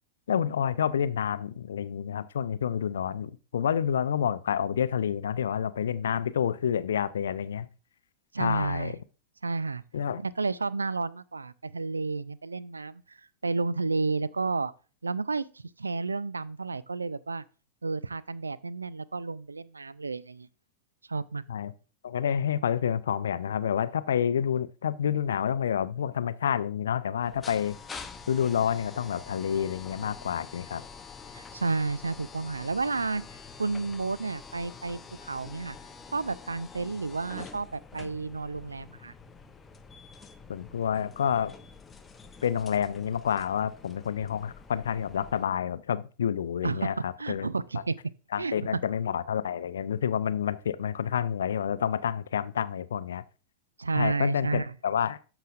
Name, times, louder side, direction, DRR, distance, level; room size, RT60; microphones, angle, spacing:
voice 1, 0.3-7.7 8.4-8.9 9.9-10.2 21.5-21.7 22.0-27.8 28.3-30.8 40.5-41.6 42.4-47.5 48.3-53.2 53.9-55.2, left 8 dB, 65° left, 0.4 m, -29 dB
voice 2, 8.3-8.9 9.4-9.8 10.2-13.2 13.4-14.7 15.0-17.4 17.8-20.5 21.1-21.4 31.3-33.2 33.6-35.8 36.1-39.1 46.6-46.9 47.2-48.0 48.4-48.6 53.8-54.7, right 3 dB, 80° right, 0.3 m, -31 dB
sound 1, 27.2-45.4, left 5 dB, 15° left, 0.7 m, -47 dB
13.0 x 4.9 x 2.4 m
figure-of-eight pair, 90°, 0 cm